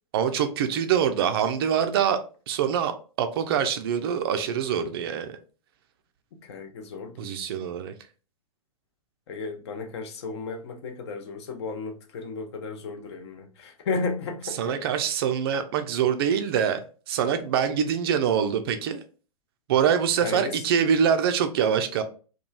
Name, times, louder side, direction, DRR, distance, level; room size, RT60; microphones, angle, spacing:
voice 1, 0.1-2.2 2.5-5.4 7.2-7.9 14.6-16.8 17.1-19.0 19.7-22.0, right 8 dB, 40° right, 0.4 m, -24 dB
voice 2, 6.3-7.4 9.3-14.8 20.2-20.5, left 4 dB, 45° left, 0.6 m, -34 dB
2.9 x 2.3 x 2.2 m
figure-of-eight pair, 110°, 19 cm